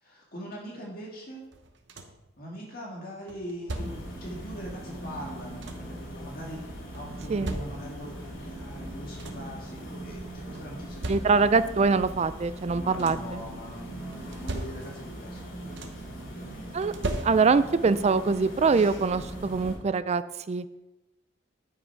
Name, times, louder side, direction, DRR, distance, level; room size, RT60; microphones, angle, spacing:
voice 1, 0.0-1.4 2.4-11.5 12.7-15.8 16.2-16.8, equal, 50° left, -3 dB, 1.9 m, -42 dB
sound 1, 1.5-2.3 3.3-4.2 5.2-6.0 6.9-8.1 8.7-8.8 9.0-9.6 10.5-11.7 12.6-13.4 14.1-15.2 15.4-16.2 16.8-17.8 19.1-19.2 19.7-19.9, right 1 dB, 60° right, 0.9 m, -38 dB
sound 2, 3.7-19.7, right 1 dB, 80° left, 2.8 m, -40 dB
voice 2, 11.1-13.4 16.7-16.9 17.2-20.2 20.5-20.6, right 4 dB, 35° right, 13 dB, 0.3 m, -23 dB
10.0 x 5.7 x 4.6 m, 0.98 s
head